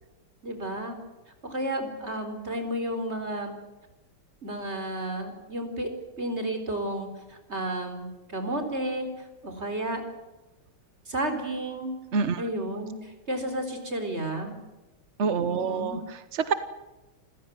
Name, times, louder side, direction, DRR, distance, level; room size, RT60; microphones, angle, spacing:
voice 1, 0.4-0.9 1.4-3.5 4.4-5.9 6.2-9.1 9.4-10.0 11.1-11.9 12.4-14.6 15.5-16.0, right 1 dB, 30° right, 6 dB, 4.4 m, -32 dB
voice 2, 12.1-12.4 15.2-16.5, right 5 dB, 50° right, 12 dB, 0.8 m, -27 dB
28.5 x 15.5 x 9.4 m, 1.1 s
omnidirectional pair, 2.4 m